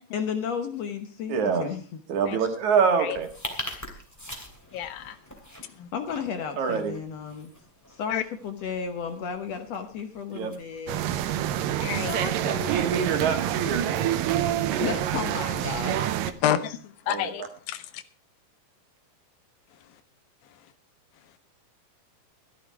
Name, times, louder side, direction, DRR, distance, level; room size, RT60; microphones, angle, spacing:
voice 1, 0.1-2.0 5.9-7.5 8.0-11.0 12.1-13.0 14.8-16.1, left 6 dB, 65° left, 7 dB, 1.9 m, -33 dB
voice 2, 1.3-1.6 2.1-3.3 6.6-6.9 10.3-10.5 12.7-13.8 17.1-17.3, right 6 dB, 60° right, 5 dB, 2.9 m, -25 dB
sound 1, 3.1-15.2, left 1 dB, 5° left, 2.1 m, -45 dB
voice 3, 4.7-5.2 5.8-5.9 8.1-8.2 11.8-12.1 16.4-18.0, left 11 dB, 90° left, 12 dB, 2.8 m, -29 dB
sound 2, 10.9-16.3, right 11 dB, 80° right, 2.5 m, -27 dB
14.0 x 12.0 x 4.7 m, 0.39 s
omnidirectional pair, 3.9 m